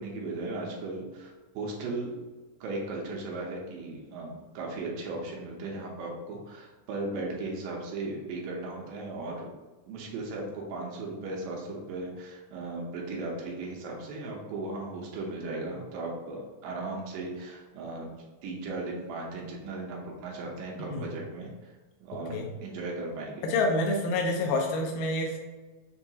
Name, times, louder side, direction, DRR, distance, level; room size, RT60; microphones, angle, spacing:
voice 1, 0.0-2.1 2.6-9.5 9.9-18.1 18.4-21.5 22.0-22.3 22.6-23.5, right 2 dB, 80° right, -2 dB, 2.4 m, -36 dB
voice 2, 23.4-25.4, left 2 dB, 85° left, 1 dB, 2.3 m, -27 dB
6.5 x 2.3 x 2.7 m, 1.2 s
omnidirectional pair, 3.8 m